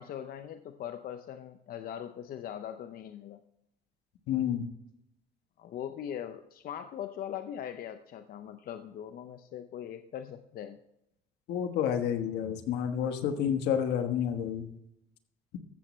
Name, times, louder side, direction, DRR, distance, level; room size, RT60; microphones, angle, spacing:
voice 1, 0.0-3.4 5.6-10.8, left 9 dB, 60° left, 8 dB, 0.6 m, -41 dB
voice 2, 4.3-4.7 11.5-14.7, left 9 dB, 80° left, 8 dB, 1.3 m, -29 dB
15.0 x 7.2 x 3.1 m, 0.80 s
cardioid pair, 110°, 17 cm